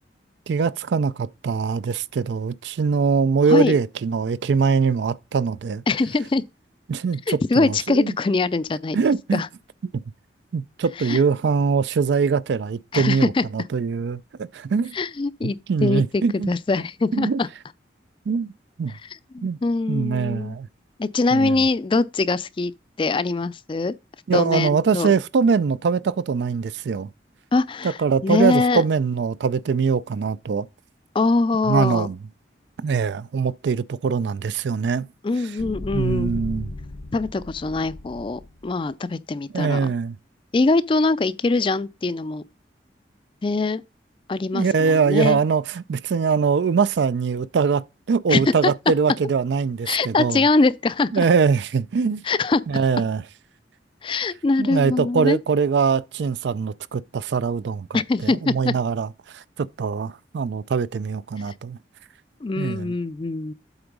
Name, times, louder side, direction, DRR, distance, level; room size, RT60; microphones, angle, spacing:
voice 1, 0.5-5.8 6.9-8.1 8.9-9.4 10.5-14.9 15.7-16.5 17.1-17.4 18.3-18.5 18.8-18.9 19.4-19.6 19.9-20.7 21.3-21.6 24.3-27.1 27.8-30.7 31.7-32.2 32.8-35.1 35.9-36.7 39.5-40.2 44.5-50.4 51.1-52.2 52.7-53.2 54.6-59.1 59.3-61.8 62.6-62.9, right 5 dB, 70° right, 0.4 m, -22 dB
voice 2, 5.9-6.4 7.3-9.0 9.3-9.5 11.0-11.2 12.9-13.4 14.9-17.5 19.3-20.5 21.0-22.7 23.0-23.9 24.3-25.1 27.5-28.0 28.2-28.8 31.1-32.1 35.2-36.4 37.1-39.9 40.5-42.4 43.4-43.8 44.3-45.4 48.3-48.7 49.9-51.3 52.2-52.6 54.0-55.4 57.9-58.7 62.4-63.5, left 3 dB, 30° left, 0.4 m, -23 dB
sound 1, 35.6-38.7, left 2 dB, 50° left, 0.7 m, -35 dB
8.0 x 3.9 x 5.2 m
head